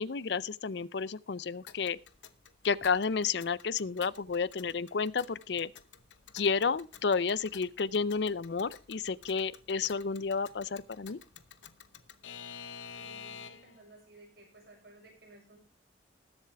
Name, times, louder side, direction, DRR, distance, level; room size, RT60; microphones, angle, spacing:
voice 1, 0.0-2.0 2.6-5.7 6.3-11.2, left 5 dB, 65° left, 0.5 m, -31 dB
Alarm / Clock, 1.7-13.8, left 7 dB, 85° left, 0.9 m, -51 dB
voice 2, 13.0-15.6, right 2 dB, 60° right, 6.7 m, -56 dB
20.0 x 8.1 x 3.4 m
head